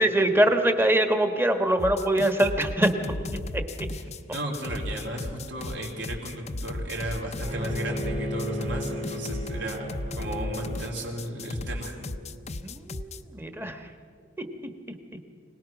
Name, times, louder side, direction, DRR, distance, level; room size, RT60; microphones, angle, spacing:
voice 1, 0.0-3.9 12.6-13.8 14.4-14.7, right 1 dB, 10° right, 7 dB, 1.3 m, -24 dB
sound 1, 1.8-13.2, left 2 dB, 35° left, 0.6 m, -35 dB
voice 2, 3.9-12.0, right 1 dB, 65° right, 0 dB, 3.5 m, -35 dB
Bowed string instrument, 7.4-12.5, equal, 35° right, 2.0 m, -35 dB
25.5 x 19.0 x 6.0 m, 2.3 s
head